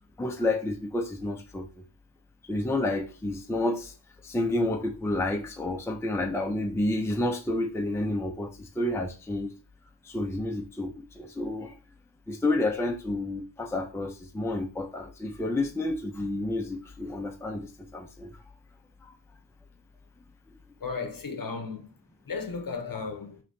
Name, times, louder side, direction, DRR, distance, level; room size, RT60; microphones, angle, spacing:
voice 1, 0.2-1.7 2.5-3.9 4.2-9.5 10.0-11.8 12.3-18.3, left 2 dB, 5° left, 0.6 m, -30 dB
voice 2, 20.8-21.9 22.3-23.4, left 4 dB, 45° left, 0.9 m, -35 dB
4.9 x 2.9 x 2.8 m
wide cardioid pair, 50°, 48 cm